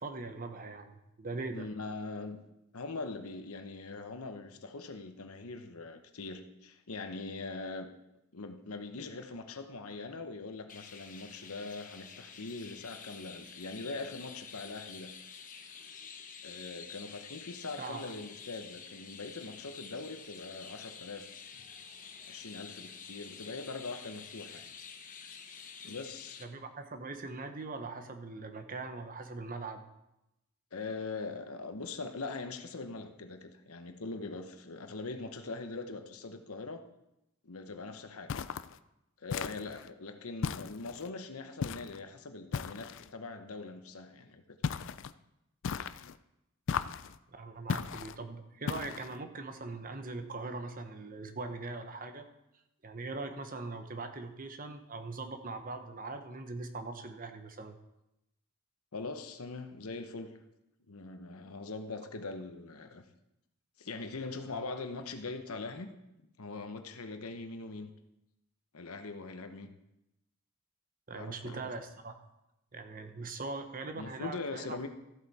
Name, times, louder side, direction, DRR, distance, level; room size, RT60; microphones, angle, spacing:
voice 1, 0.0-1.7 17.8-18.1 26.4-29.8 47.3-52.3 52.8-57.8 71.1-72.1 72.7-74.9, right 3 dB, 40° right, 7 dB, 1.0 m, -41 dB
voice 2, 1.5-2.4 2.7-7.9 8.3-15.1 16.4-21.3 21.5-21.7 22.3-24.7 25.8-26.4 30.7-36.8 37.4-38.3 39.2-44.6 58.9-60.3 60.9-63.0 63.8-65.9 66.4-67.9 68.7-69.7 71.1-71.6 73.9-74.9, left 3 dB, 80° left, 7 dB, 1.0 m, -42 dB
Chirp tweet, 10.7-26.4, left 6 dB, 40° left, 1.0 m, -49 dB
sound 1, 38.3-38.8 39.3-39.9 40.4-41.1 41.6-42.0 42.5-43.1 44.6-45.1 45.6-46.2 46.7-47.2 47.7-48.2 48.7-49.2, left 6 dB, 60° left, 0.4 m, -36 dB
14.0 x 8.1 x 4.2 m, 0.89 s
head